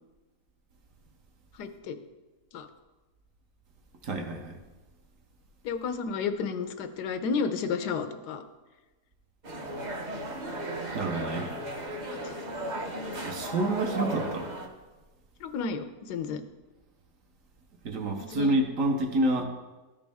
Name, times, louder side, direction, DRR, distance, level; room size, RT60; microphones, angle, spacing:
voice 1, 1.6-2.0 2.5-2.7 5.6-8.4 12.1-12.3 15.4-16.4 18.3-18.5, left 5 dB, 85° left, 9 dB, 1.3 m, -32 dB
voice 2, 4.0-4.6 10.9-11.5 13.2-14.5 17.8-19.4, right 2 dB, 60° right, 3 dB, 1.2 m, -28 dB
sound 1, 9.4-14.7, right 1 dB, 35° right, 0.7 m, -35 dB
13.0 x 5.2 x 3.5 m, 1.2 s
omnidirectional pair, 1.7 m